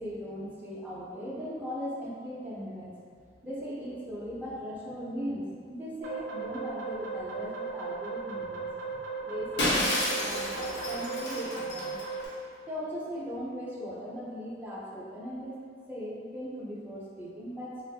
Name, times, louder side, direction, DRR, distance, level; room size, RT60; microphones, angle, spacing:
voice 1, 0.0-8.7 9.0-12.0 12.7-15.6 15.9-17.8, equal, 10° right, -8 dB, 0.4 m, -38 dB
sound 1, 6.0-12.3, right 4 dB, 80° right, 0.4 m, -37 dB
Shatter, 9.6-12.3, left 1 dB, 70° left, 0.6 m, -30 dB
2.4 x 2.4 x 2.3 m, 2.2 s
head